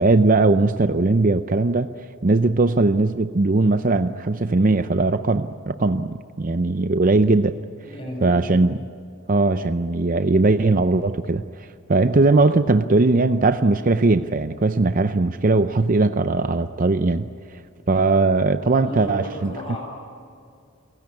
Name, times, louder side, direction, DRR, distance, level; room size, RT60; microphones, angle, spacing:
voice 1, 0.0-1.9 2.2-7.6 8.2-8.8 9.3-17.6 17.9-19.6, right 3 dB, 40° right, 10 dB, 0.6 m, -19 dB
voice 2, 7.8-8.7 18.7-19.8, equal, 25° left, 0 dB, 7.1 m, -34 dB
30.0 x 16.5 x 9.7 m, 2.3 s
head